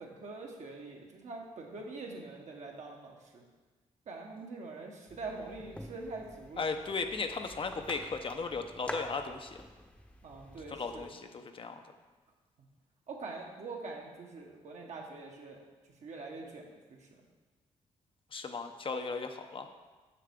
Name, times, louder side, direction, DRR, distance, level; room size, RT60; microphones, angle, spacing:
voice 1, 0.0-3.4 4.1-6.6 10.2-11.1 12.6-12.7 13.1-15.6 16.0-17.2, right 3 dB, 65° right, 0 dB, 1.3 m, -44 dB
sound 1, 5.1-11.1, left 1 dB, 10° left, 0.8 m, -48 dB
voice 2, 6.6-9.6 10.7-11.8 18.3-19.7, left 4 dB, 40° left, 6 dB, 0.7 m, -36 dB
6.7 x 6.5 x 3.7 m, 1.3 s
cardioid pair, 65°, 13 cm